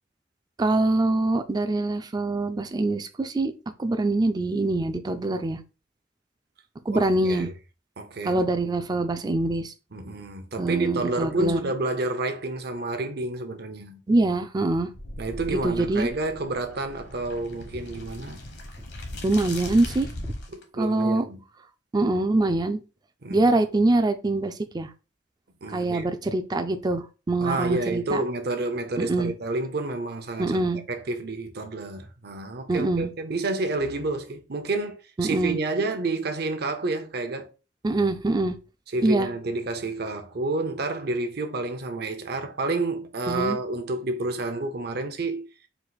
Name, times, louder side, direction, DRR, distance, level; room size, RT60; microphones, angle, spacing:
voice 1, 0.6-3.5 3.8-5.6 6.9-7.5 8.2-9.7 10.6-11.7 14.1-14.9 15.5-16.1 19.2-20.1 20.8-21.2 21.9-22.8 23.3-24.9 25.7-28.2 29.0-29.3 30.4-30.8 32.7-33.1 35.2-35.6 37.8-38.6 39.0-39.3 43.3-43.6, right 2 dB, 20° right, 0.4 m, -24 dB
voice 2, 6.9-7.5 8.0-8.5 9.9-14.0 15.2-18.4 20.5-21.4 23.2-23.5 25.6-26.1 27.4-37.5 38.9-45.5, right 2 dB, 60° right, 0.8 m, -29 dB
sound 1, 14.9-20.6, left 1 dB, 65° left, 1.1 m, -39 dB
4.6 x 2.5 x 3.9 m
head